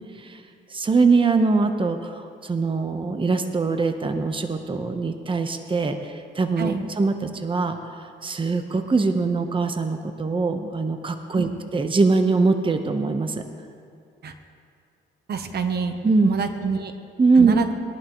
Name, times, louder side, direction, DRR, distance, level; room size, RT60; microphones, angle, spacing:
voice 1, 0.7-7.8 8.2-13.3 16.0-16.3 17.2-17.5, right 4 dB, 25° right, 6 dB, 1.0 m, -22 dB
voice 2, 15.3-16.0 16.2-16.9 17.4-17.7, right 6 dB, 55° right, 7 dB, 1.0 m, -27 dB
21.5 x 11.0 x 3.1 m, 2.3 s
cardioid pair, 90°, 20 cm